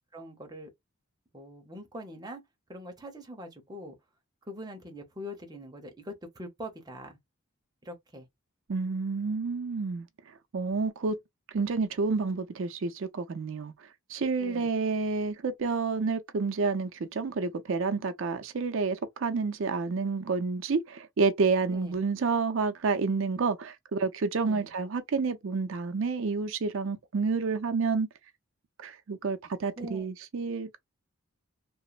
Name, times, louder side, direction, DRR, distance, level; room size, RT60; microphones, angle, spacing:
voice 1, 0.1-0.7 1.3-2.4 2.7-3.9 4.5-7.2 7.8-8.3 14.4-14.7 21.7-22.0 24.4-24.7 29.8-30.1, equal, 20° right, 0.7 m, -43 dB
voice 2, 8.7-10.1 10.5-11.2 11.5-13.7 14.1-28.1 28.8-30.8, right 4 dB, 60° right, 0.5 m, -29 dB
2.9 x 2.0 x 2.3 m
head